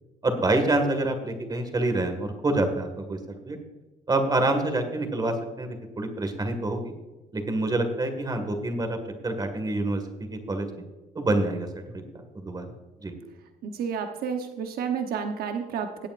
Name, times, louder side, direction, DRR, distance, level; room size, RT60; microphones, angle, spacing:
voice 1, 0.2-3.6 4.1-6.9 7.3-9.0 9.2-10.7 11.2-12.7 13.0-13.1, right 2 dB, 25° right, 6 dB, 1.9 m, -27 dB
voice 2, 13.6-16.1, right 6 dB, 65° right, 5 dB, 1.0 m, -30 dB
19.0 x 8.5 x 2.6 m, 1.2 s
cardioid pair, 110°, 17 cm